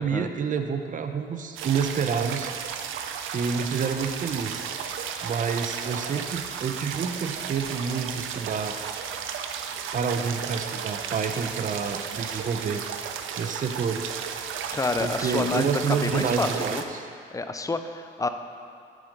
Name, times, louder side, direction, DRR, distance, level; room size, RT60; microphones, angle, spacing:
voice 1, 0.0-2.5 3.3-4.6 5.2-8.8 9.9-12.8 13.4-14.1 15.0-17.1, right 6 dB, 40° right, 7 dB, 0.7 m, -28 dB
sound 1, 1.6-16.8, right 7 dB, 85° right, 0.6 m, -34 dB
voice 2, 14.7-16.8 17.3-18.3, left 3 dB, 15° left, 8 dB, 0.5 m, -29 dB
8.4 x 7.0 x 5.2 m, 2.3 s
cardioid pair, 90°, 20 cm